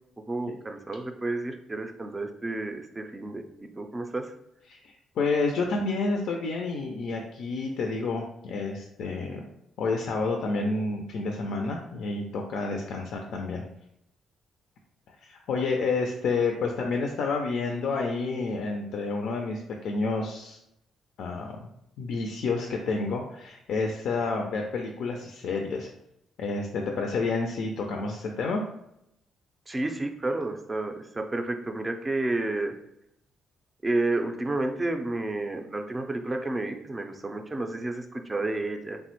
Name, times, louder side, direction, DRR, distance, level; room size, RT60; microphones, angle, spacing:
voice 1, 0.3-4.3 29.7-32.7 33.8-39.0, right 2 dB, 20° right, 5 dB, 0.4 m, -31 dB
voice 2, 4.7-9.4 9.8-13.6 15.2-20.6 21.2-21.6 22.0-25.9 26.4-28.6, left 3 dB, 75° left, 2 dB, 0.3 m, -29 dB
3.2 x 2.0 x 2.9 m, 0.79 s
cardioid pair, 90°, 0 cm